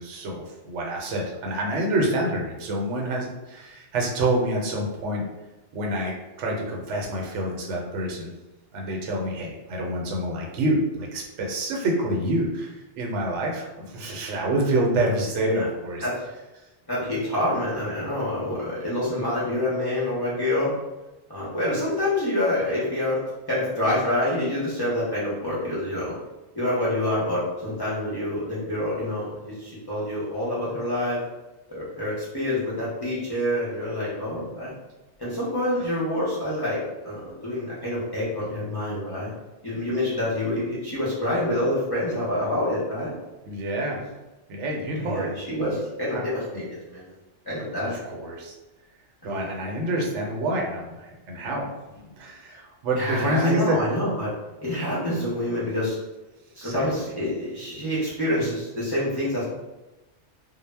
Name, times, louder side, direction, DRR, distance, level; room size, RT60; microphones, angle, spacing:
voice 1, 0.0-5.2 5.7-8.3 8.7-16.1 43.4-44.0 44.5-45.3 46.1-46.2 47.8-48.5 49.2-51.7 52.0-53.8 56.6-56.9, right 1 dB, 80° right, -1 dB, 0.9 m, -27 dB
voice 2, 16.9-20.7 21.3-23.2 23.5-26.1 26.5-31.2 31.7-34.7 35.2-39.3 39.6-43.1 45.0-47.1 47.4-48.0 49.2-49.5 52.9-54.3 54.6-56.0 56.6-59.5, left 1 dB, 30° left, -9 dB, 0.5 m, -27 dB
2.0 x 2.0 x 3.2 m, 1.1 s
omnidirectional pair, 1.2 m